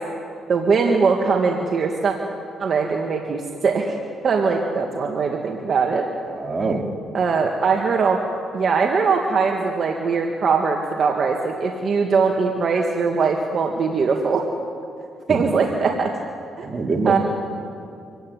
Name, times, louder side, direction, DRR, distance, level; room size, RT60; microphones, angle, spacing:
voice 1, 0.5-2.2 2.6-4.0 4.2-6.1 7.1-8.2 8.5-14.5 15.3-16.1 16.6-16.7 17.1-17.2, right 5 dB, 50° right, 2 dB, 2.0 m, -21 dB
voice 2, 6.3-6.9 15.3-15.4 16.6-17.2, right 3 dB, 35° right, 2 dB, 3.0 m, -24 dB
25.5 x 15.5 x 9.6 m, 2.4 s
cardioid pair, 90°, 0 cm